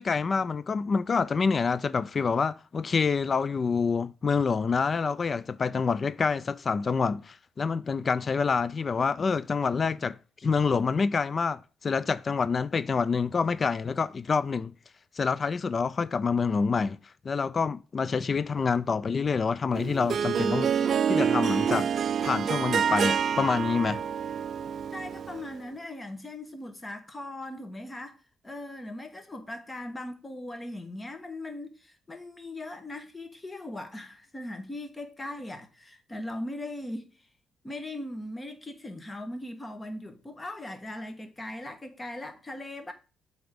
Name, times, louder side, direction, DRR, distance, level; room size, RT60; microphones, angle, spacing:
voice 1, 0.0-14.7 15.1-17.0 17.2-21.9 22.2-24.0, left 5 dB, 35° left, 0.3 m, -27 dB
Harp, 19.7-25.5, right 7 dB, 50° right, 0.4 m, -27 dB
voice 2, 24.9-37.1 37.6-42.9, left 1 dB, 15° left, 1.3 m, -39 dB
7.7 x 3.5 x 5.1 m
cardioid pair, 120°, 0 cm